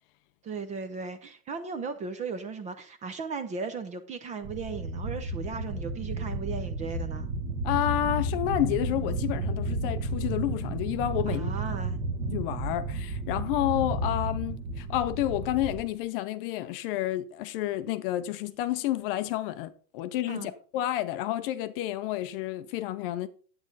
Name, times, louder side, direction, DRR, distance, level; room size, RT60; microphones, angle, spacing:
voice 1, 0.4-7.3 11.3-12.0 20.3-20.5, right 5 dB, 15° right, 0.5 m, -36 dB
sound 1, 4.4-15.8, right 2 dB, 40° right, 1.4 m, -32 dB
voice 2, 7.6-11.5 12.3-23.3, left 13 dB, 40° left, 0.6 m, -30 dB
9.5 x 8.7 x 4.0 m
supercardioid pair, 155°, 45 cm